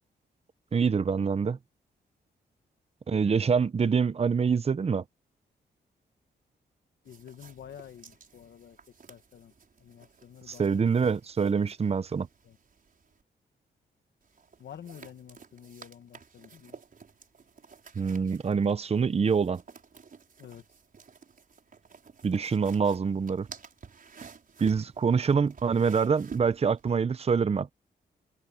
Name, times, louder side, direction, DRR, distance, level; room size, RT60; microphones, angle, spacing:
voice 1, 0.7-1.6 3.1-5.0 10.6-12.3 18.0-19.6 22.2-23.5 24.6-27.7, right 6 dB, 35° right, 0.7 m, -25 dB
voice 2, 7.0-8.8 9.1-9.5 9.8-10.8 12.4-12.6 14.6-16.8 20.4-20.6, left 9 dB, 75° left, 1.7 m, -49 dB
sound 1, 7.1-13.2 14.2-26.9, right 5 dB, 50° right, 6.1 m, -52 dB
cardioid pair, 85°, 18 cm